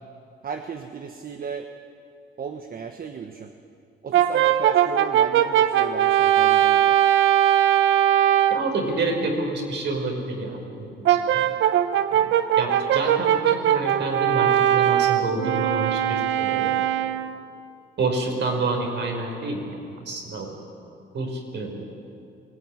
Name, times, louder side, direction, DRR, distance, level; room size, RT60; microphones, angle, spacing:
voice 1, 0.4-1.7 2.4-3.5 4.0-7.0, right 6 dB, 45° right, 6 dB, 1.2 m, -35 dB
Brass instrument, 4.1-8.7 11.1-17.4, right 11 dB, 80° right, 0.9 m, -20 dB
voice 2, 8.5-11.5 12.1-12.3 12.6-16.8 18.0-20.5 21.1-21.9, right 3 dB, 60° right, 2 dB, 5.3 m, -28 dB
22.0 x 17.0 x 9.9 m, 2.5 s
cardioid pair, 90°, 20 cm